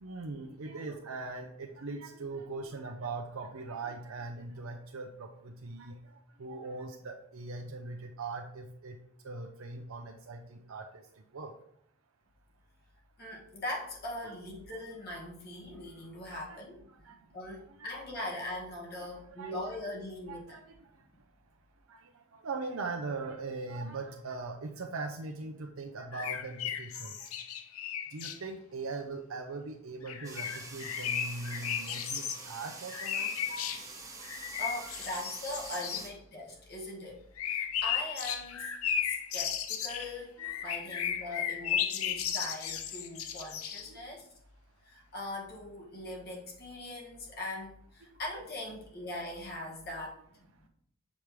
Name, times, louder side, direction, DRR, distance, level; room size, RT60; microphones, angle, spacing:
voice 1, 0.0-6.0 6.4-9.0 9.2-10.8 11.3-11.5 16.3-16.6 17.0-17.1 18.1-18.2 19.4-19.8 20.3-20.6 21.9-22.0 22.3-27.1 28.1-33.7 34.8-35.2 40.4-40.5 41.2-41.3 41.7-41.8 42.1-42.2, right 3 dB, 75° right, 2 dB, 0.6 m, -40 dB
voice 2, 13.2-20.5 34.6-38.7 39.0-44.3 44.8-50.7, left 1 dB, 45° left, -2 dB, 1.3 m, -41 dB
sound 1, 26.1-28.4 30.1-32.4 32.9-33.8 34.2-36.1 37.4-43.9, left 9 dB, 80° left, 0.6 m, -35 dB
sound 2, 30.2-36.1, right 3 dB, 15° right, 1.0 m, -46 dB
7.1 x 5.1 x 3.1 m, 0.68 s
head